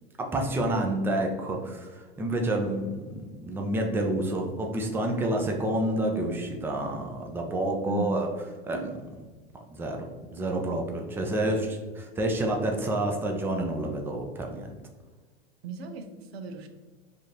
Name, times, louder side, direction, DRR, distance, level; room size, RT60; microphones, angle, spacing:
voice 1, 0.2-8.3 8.6-9.0 9.7-14.7, right 1 dB, 5° right, 2 dB, 0.4 m, -29 dB
voice 2, 7.9-8.2 15.6-16.7, equal, 80° right, 7 dB, 0.5 m, -35 dB
3.5 x 2.6 x 2.8 m, 1.3 s
hypercardioid pair, 95°, 31 cm